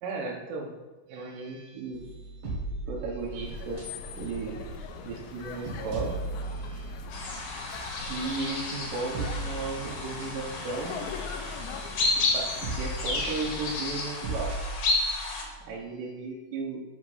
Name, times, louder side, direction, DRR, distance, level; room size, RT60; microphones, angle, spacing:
voice 1, 0.0-0.8 1.1-2.1 2.3-2.4 2.7-3.9 4.1-4.6 5.0-7.0 8.1-11.7 12.3-14.6 15.7-16.8, right 4 dB, 85° right, -1 dB, 1.9 m, -35 dB
sound 1, 1.9-4.2 4.6-4.7 5.1-7.7 8.1-8.5 8.9-10.7 11.0-15.7, right 2 dB, 55° right, 3.0 m, -38 dB
sound 2, 3.2-14.3, left 5 dB, 85° left, 2.6 m, -42 dB
sound 3, 7.1-15.4, left 3 dB, 65° left, 2.2 m, -32 dB
7.2 x 5.2 x 5.5 m, 1.1 s
omnidirectional pair, 5.8 m